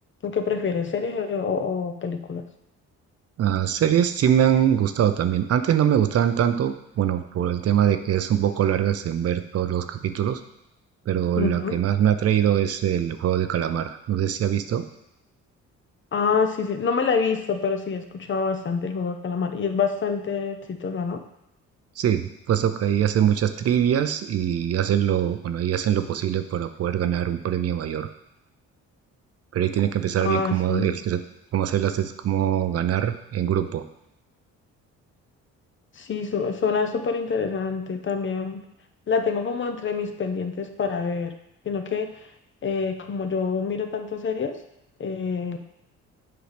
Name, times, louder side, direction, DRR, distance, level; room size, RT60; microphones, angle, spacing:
voice 1, 0.2-2.4 11.4-11.8 16.1-21.2 30.2-30.9 36.0-38.6 39.1-41.3 41.6-42.2 42.6-44.6 45.0-45.6, left 5 dB, 40° left, 6 dB, 0.7 m, -26 dB
voice 2, 3.4-10.4 11.1-14.8 22.0-28.1 29.5-31.2 31.5-33.8, right 10 dB, 55° right, 9 dB, 0.6 m, -23 dB
7.8 x 4.6 x 3.4 m, 0.83 s
cardioid pair, 90°, 30 cm